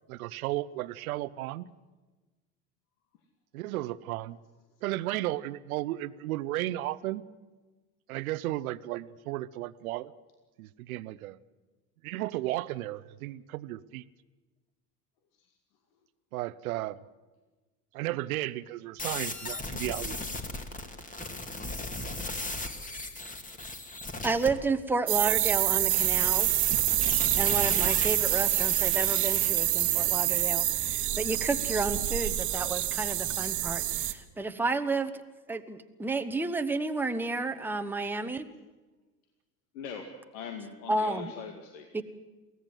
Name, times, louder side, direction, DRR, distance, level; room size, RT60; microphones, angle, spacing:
voice 1, 0.1-1.7 3.5-4.4 4.8-7.3 8.1-10.1 10.6-11.4 12.0-14.0 16.3-17.0 17.9-20.2, right 16 dB, 65° right, 16 dB, 0.9 m, -34 dB
sound 1, 19.0-24.5 25.9-30.4, left 2 dB, 15° left, 2.5 m, -37 dB
voice 2, 24.2-26.6 27.4-35.1 35.5-38.4 40.9-41.3 41.9-42.0, right 3 dB, 5° right, 7 dB, 1.2 m, -31 dB
sound 2, 25.1-34.1, right 14 dB, 40° right, 1.5 m, -27 dB
voice 3, 39.7-41.9, left 6 dB, 60° left, 5 dB, 2.2 m, -42 dB
23.5 x 16.5 x 7.9 m, 1.2 s
figure-of-eight pair, 75°, 46 cm